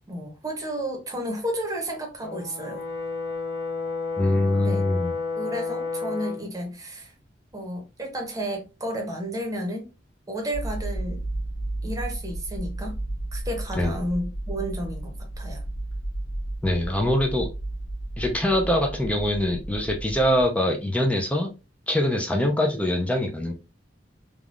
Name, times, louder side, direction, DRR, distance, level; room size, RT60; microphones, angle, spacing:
voice 1, 0.1-2.8 4.6-4.8 5.3-7.1 7.5-9.9 10.3-11.2 11.8-13.0 13.3-15.6, right 1 dB, 20° right, 0.8 m, -32 dB
Brass instrument, 2.2-6.5, left 4 dB, 45° left, 1.4 m, -31 dB
voice 2, 4.2-5.2 13.8-14.0 16.6-17.5 18.2-21.5 21.9-23.5, left 1 dB, 10° left, 0.4 m, -23 dB
sound 1, 10.5-20.5, right 1 dB, 85° left, 1.5 m, -33 dB
3.4 x 2.3 x 2.4 m
head